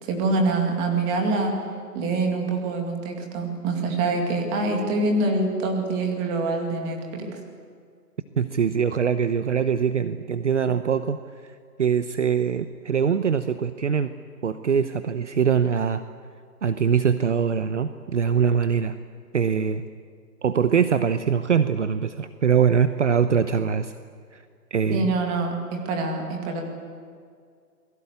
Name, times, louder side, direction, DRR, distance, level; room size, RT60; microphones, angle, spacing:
voice 1, 0.0-1.6 1.9-7.3 24.9-26.6, right 3 dB, 10° right, 2 dB, 2.2 m, -25 dB
voice 2, 8.4-11.2 11.8-14.1 14.4-16.0 16.6-19.0 19.3-19.8 20.4-23.9 24.3-24.4 24.7-25.1, right 7 dB, 45° right, 11 dB, 0.9 m, -23 dB
28.5 x 21.0 x 8.3 m, 2.2 s
hypercardioid pair, 165°, 48 cm